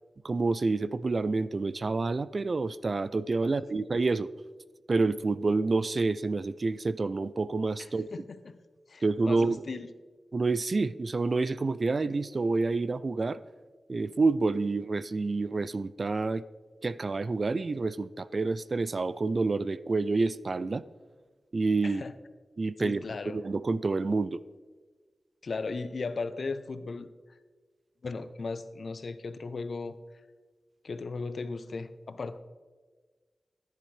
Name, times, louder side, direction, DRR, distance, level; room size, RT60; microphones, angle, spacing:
voice 1, 0.2-4.3 4.9-8.1 9.0-9.6 10.3-13.4 13.9-16.4 16.8-20.8 21.5-22.0 22.6-24.4, right 3 dB, 50° right, 17 dB, 0.4 m, -28 dB
voice 2, 7.8-8.6 8.9-9.9 21.8-22.1 22.8-23.4 25.4-27.1 28.0-30.0 30.8-32.4, left 4 dB, 65° left, 11 dB, 0.6 m, -37 dB
14.0 x 10.5 x 3.3 m, 1.4 s
wide cardioid pair, 80°, 0 cm